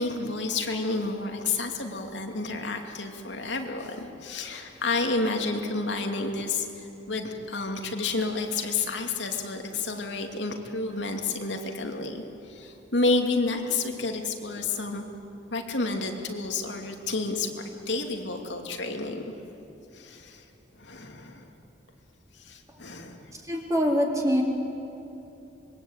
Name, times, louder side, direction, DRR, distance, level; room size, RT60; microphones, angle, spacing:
voice 1, 0.0-15.0 15.5-19.2 19.9-20.4 20.7-21.5 22.3-23.2, left 3 dB, 85° left, 3 dB, 2.7 m, -30 dB
voice 2, 23.3-24.4, equal, 20° right, 0 dB, 3.2 m, -24 dB
26.0 x 23.0 x 8.9 m, 2.9 s
head